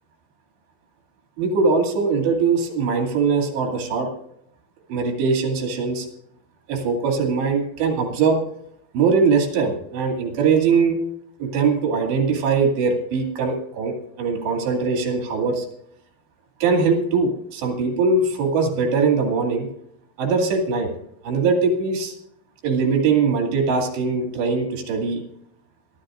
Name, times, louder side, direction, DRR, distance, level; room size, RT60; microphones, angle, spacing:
voice 1, 1.4-4.1 4.9-6.1 6.7-8.4 8.9-11.0 11.4-15.7 16.6-19.7 20.2-20.9 21.2-22.1 22.6-25.2, right 4 dB, 85° right, 2 dB, 4.6 m, -21 dB
24.5 x 12.0 x 2.5 m, 0.73 s
omnidirectional pair, 4.9 m